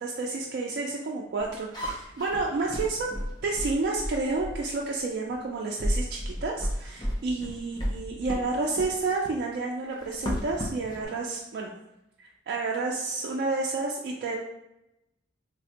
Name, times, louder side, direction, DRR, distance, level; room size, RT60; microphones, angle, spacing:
voice 1, 0.0-11.7 12.2-14.3, right 3 dB, 60° right, -2 dB, 0.3 m, -30 dB
sound 1, 1.4-4.7 5.3-5.4 5.8-8.5 8.8-9.0 10.0-11.1, equal, 25° left, 0.4 m, -33 dB
3.3 x 2.1 x 2.8 m, 0.89 s
head